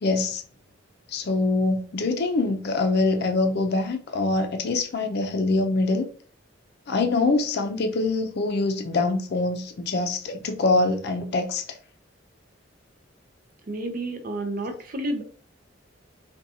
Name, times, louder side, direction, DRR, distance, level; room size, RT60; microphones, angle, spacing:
voice 1, 0.0-0.4 1.1-6.1 6.9-11.6, left 3 dB, 55° left, 0.4 m, -24 dB
voice 2, 13.7-15.2, right 1 dB, 45° right, 0.5 m, -30 dB
2.7 x 2.2 x 2.7 m
head